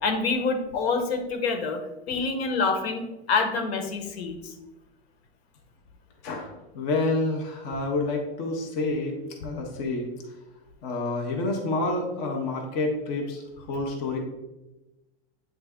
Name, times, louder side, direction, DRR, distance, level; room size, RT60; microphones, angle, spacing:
voice 1, 0.0-1.8 2.1-4.5, left 4 dB, 65° left, 6 dB, 1.0 m, -27 dB
voice 2, 6.2-10.4 10.8-14.2, left 2 dB, 20° left, 1 dB, 0.5 m, -29 dB
8.2 x 3.3 x 3.5 m, 1.0 s
supercardioid pair, 175°, 33 cm